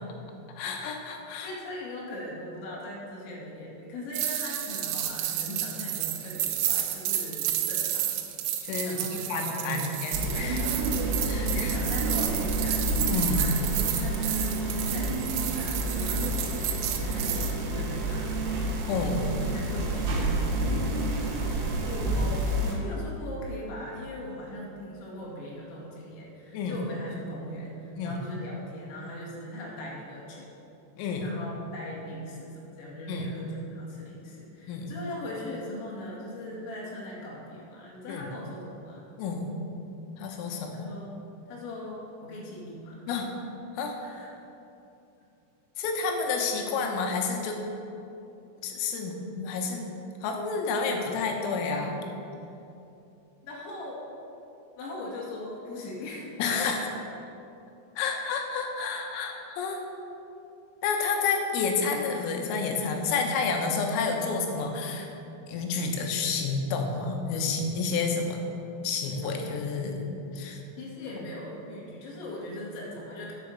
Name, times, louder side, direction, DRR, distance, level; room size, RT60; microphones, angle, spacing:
voice 1, 0.6-1.5 8.6-9.0 9.3-10.7 11.2-11.8 13.1-13.4 18.9-19.3 26.5-26.8 28.0-28.2 31.0-31.4 33.1-33.3 34.7-34.9 38.1-38.3 39.2-39.5 40.2-40.9 43.1-43.3 43.8-44.0 45.8-47.6 48.6-49.8 50.2-52.0 56.4-56.9 58.0-59.8 60.8-65.1 65.5-68.4 68.8-70.1 70.3-70.6, left 4 dB, 90° left, 3 dB, 3.7 m, -30 dB
voice 2, 1.4-8.1 8.8-10.9 11.4-18.7 19.5-21.0 21.8-30.5 31.2-39.0 40.7-41.2 41.5-43.0 44.0-44.3 53.4-54.0 54.8-56.6 70.8-73.3, left 1 dB, 70° left, -5 dB, 4.3 m, -40 dB
sound 1, 4.1-17.5, right 11 dB, 85° right, 3.3 m, -31 dB
sound 2, 10.1-22.7, right 1 dB, 65° right, 2.9 m, -29 dB
9.9 x 7.1 x 6.7 m, 2.8 s
omnidirectional pair, 5.8 m